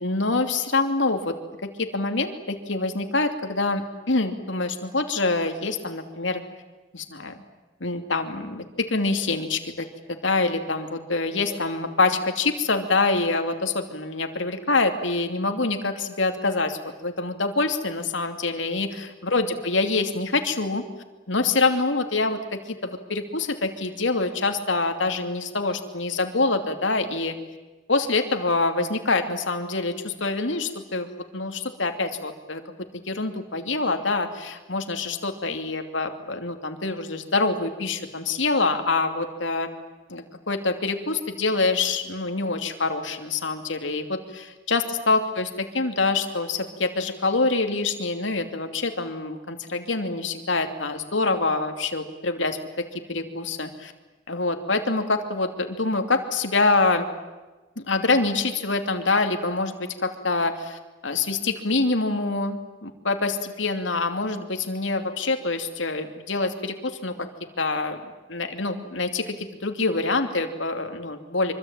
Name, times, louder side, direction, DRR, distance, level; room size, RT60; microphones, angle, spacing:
voice 1, 0.0-1.3 1.6-6.4 6.9-7.4 7.8-20.8 21.3-27.3 27.9-31.1 31.3-32.6 32.9-39.7 40.1-53.9 54.3-57.0 57.8-59.7 60.0-67.3 67.6-68.0 68.3-71.5, left 3 dB, 90° left, 5 dB, 2.8 m, -25 dB
25.0 x 25.0 x 9.1 m, 1.2 s
head